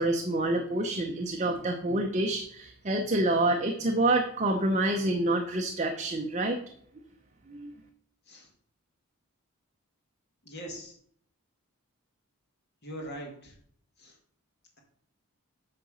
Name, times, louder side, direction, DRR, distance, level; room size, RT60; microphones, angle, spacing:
voice 1, 0.0-6.6 7.5-7.7, right 2 dB, 30° right, 3 dB, 0.6 m, -27 dB
voice 2, 10.4-10.9 12.8-13.6 14.0-14.2, right 1 dB, 45° left, 1 dB, 2.1 m, -41 dB
8.7 x 3.9 x 6.3 m, 0.63 s
head